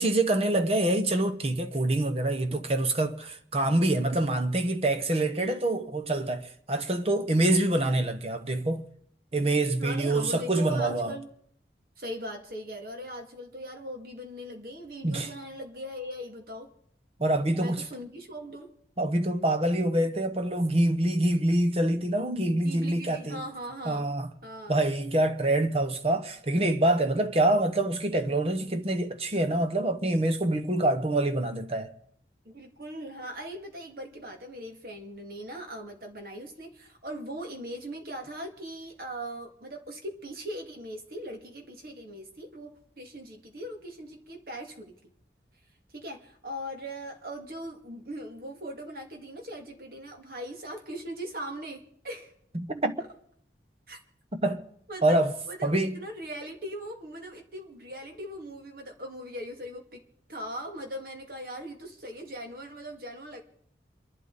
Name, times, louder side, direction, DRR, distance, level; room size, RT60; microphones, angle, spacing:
voice 1, 0.0-8.8 9.3-11.1 15.0-15.3 17.2-17.8 19.0-23.4 23.9-24.3 24.7-31.9 52.5-53.0 54.4-54.6 55.0-55.3 55.6-56.0, right 1 dB, 35° right, 0.9 m, -26 dB
voice 2, 9.8-11.3 12.0-16.7 17.6-18.7 22.6-24.1 24.4-24.8 32.4-44.9 45.9-52.3 53.9-54.0 54.9-60.0 60.3-63.4, equal, 55° right, 2.3 m, -40 dB
28.0 x 12.0 x 4.1 m
head